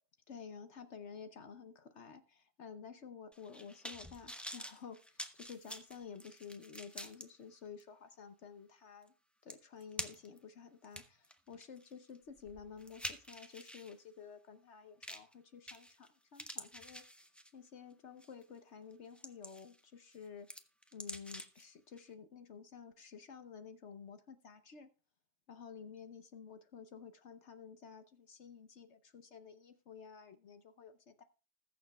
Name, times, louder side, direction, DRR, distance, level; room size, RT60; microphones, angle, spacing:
voice 1, 0.3-9.1 9.4-20.5 20.9-24.9 25.5-31.2, left 6 dB, 55° left, 9 dB, 0.9 m, -52 dB
sound 1, 3.3-7.2 7.8-7.9 9.1-9.2 9.5-10.4 10.8-13.9 15.0-15.3 15.7-16.1 16.3-17.7 18.2-18.4 18.9-19.8 20.1-21.6 22.0-22.1, equal, ahead, 0.5 m, -47 dB
20.5 x 6.8 x 2.2 m, 0.35 s
omnidirectional pair, 1.7 m